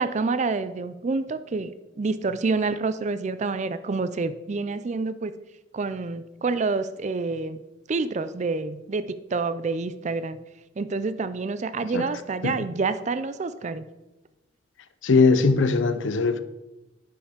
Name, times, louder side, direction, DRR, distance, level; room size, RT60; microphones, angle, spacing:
voice 1, 0.0-5.3 5.7-7.6 7.9-10.4 10.8-13.8, right 4 dB, 35° right, 0.4 m, -28 dB
voice 2, 15.0-16.4, left 4 dB, 70° left, 0.6 m, -20 dB
9.9 x 5.6 x 5.1 m
head